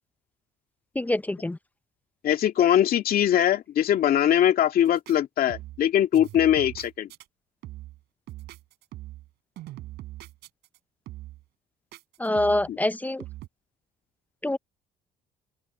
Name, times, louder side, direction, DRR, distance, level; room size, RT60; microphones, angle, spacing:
voice 1, 1.0-1.6 12.2-13.2 14.4-14.6, left 1 dB, 10° left, 0.6 m, -25 dB
voice 2, 2.2-7.1 12.7-12.8, left 10 dB, 60° left, 2.4 m, -22 dB
sound 1, 4.9-5.2 5.5-5.9 6.1-7.3 7.6-8.0 8.3-9.3 9.6-10.8 11.1-11.4 11.9-12.7 13.2-13.5, right 16 dB, 80° right, 6.5 m, -41 dB
open air
cardioid pair, 110°, 17 cm